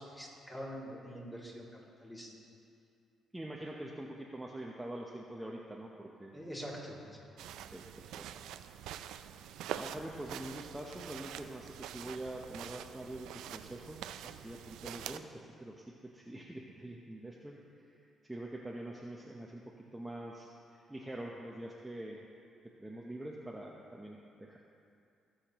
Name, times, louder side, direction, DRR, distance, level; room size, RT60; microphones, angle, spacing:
voice 1, 0.0-1.7 2.0-2.3 6.3-7.2, equal, 15° left, -4 dB, 2.5 m, -44 dB
voice 2, 3.3-6.3 7.7-8.2 9.8-15.8 16.1-19.6 19.9-22.3 22.8-24.6, right 1 dB, 10° right, -2 dB, 0.8 m, -45 dB
sound 1, 7.4-15.2, right 10 dB, 90° right, 0.3 m, -45 dB
19.0 x 6.5 x 3.0 m, 2.5 s
cardioid pair, 90°, 0 cm